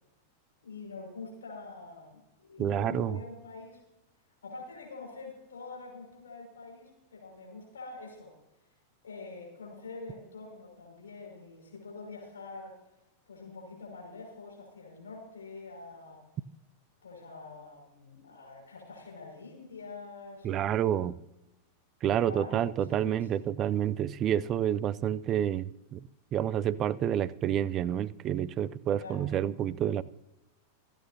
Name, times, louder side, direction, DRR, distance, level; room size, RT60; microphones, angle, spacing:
voice 1, 0.6-3.8 4.4-8.3 9.0-12.8 13.3-16.2 17.0-21.0 22.1-22.6 23.0-23.5 29.0-29.3, left 3 dB, 70° left, 5.8 m, -45 dB
voice 2, 2.6-3.2 20.4-21.2 22.0-26.0 26.3-30.0, right 10 dB, 30° right, 0.4 m, -29 dB
26.0 x 8.9 x 2.8 m
figure-of-eight pair, 90°, 0 cm